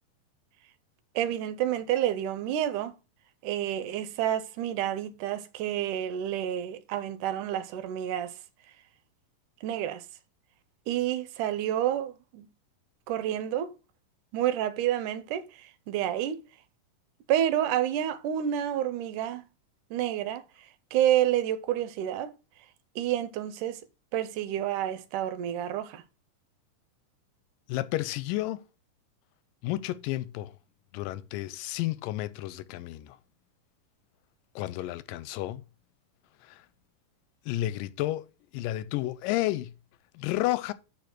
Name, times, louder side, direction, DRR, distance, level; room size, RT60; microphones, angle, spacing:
voice 1, 1.2-2.9 3.4-8.4 9.6-10.0 10.9-12.5 13.1-13.8 14.3-16.4 17.3-19.4 19.9-20.4 20.9-22.3 23.0-23.8 24.1-26.0, right 11 dB, 80° right, 2.2 m, -29 dB
voice 2, 27.7-28.6 29.6-30.5 30.9-33.2 34.6-35.6 36.4-36.6 37.5-38.3 38.5-39.7 40.1-40.7, left 16 dB, 85° left, 2.2 m, -31 dB
6.8 x 5.1 x 5.9 m
omnidirectional pair, 3.9 m